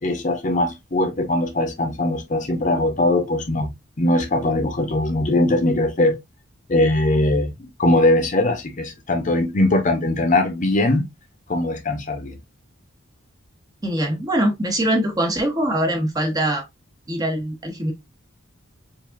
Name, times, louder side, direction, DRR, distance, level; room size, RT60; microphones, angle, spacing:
voice 1, 0.0-3.7 4.0-6.1 6.7-11.1 11.5-12.4, left 2 dB, 40° left, 0.8 m, -20 dB
voice 2, 13.8-16.6 17.1-17.9, right 1 dB, 20° right, 0.7 m, -22 dB
4.7 x 2.6 x 2.4 m
head